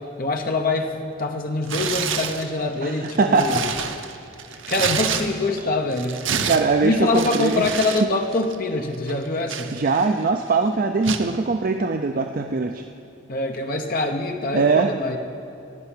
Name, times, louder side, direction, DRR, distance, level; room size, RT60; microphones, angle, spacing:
voice 1, 0.2-3.7 4.7-6.5 6.8-9.7 13.3-15.2, left 2 dB, 45° left, 4 dB, 0.9 m, -24 dB
Tearing, 1.6-2.5 3.0-5.6 5.9-8.1 8.3-8.6 9.1-10.2 11.0-11.3, right 7 dB, 75° right, 0.8 m, -28 dB
voice 2, 2.8-3.6 6.5-7.8 9.7-12.8 14.5-14.9, right 4 dB, 45° right, 5 dB, 0.5 m, -21 dB
16.0 x 5.6 x 9.9 m, 2.8 s
head